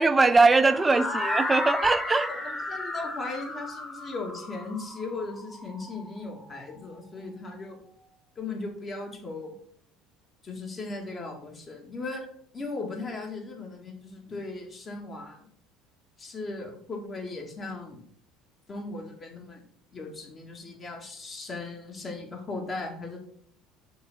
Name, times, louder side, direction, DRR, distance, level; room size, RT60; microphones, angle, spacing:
voice 1, 0.0-2.3, right 3 dB, 20° right, 0.5 m, -21 dB
sound 1, 0.7-6.6, left 2 dB, 15° left, 1.5 m, -33 dB
voice 2, 2.3-7.8 8.4-9.5 10.4-12.2 12.5-15.4 16.2-18.1 18.7-19.6 19.9-23.2, left 3 dB, 35° left, 2.0 m, -37 dB
5.4 x 3.9 x 5.8 m
hypercardioid pair, 70°, 0 cm